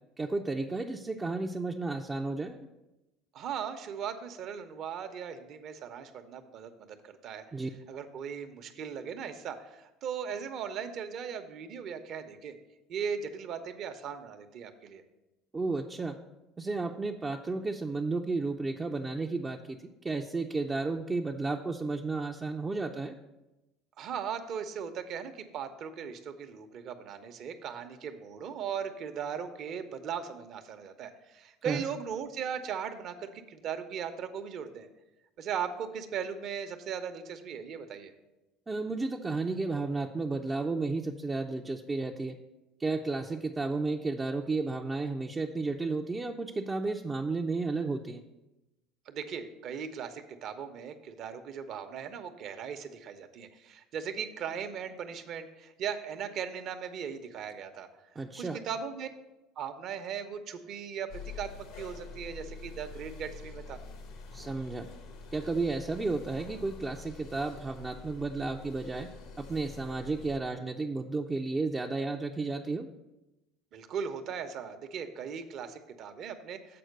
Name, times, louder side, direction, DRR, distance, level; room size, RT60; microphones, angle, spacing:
voice 1, 0.2-2.7 7.5-7.7 15.5-16.2 16.6-23.2 31.7-31.8 38.7-42.4 42.8-48.2 58.2-58.6 64.3-64.9 65.3-69.1 69.4-72.9, right 3 dB, 20° right, 2 dB, 0.5 m, -33 dB
voice 2, 3.3-7.4 7.9-12.5 12.9-15.0 24.0-34.9 35.4-38.1 49.1-57.9 58.4-59.1 59.6-63.8 73.7-76.8, right 7 dB, 55° right, 9 dB, 0.8 m, -38 dB
sound 1, 61.1-70.4, left 4 dB, 70° left, 0.9 m, -46 dB
7.7 x 4.4 x 6.6 m, 1.0 s
supercardioid pair, 95°, 0 cm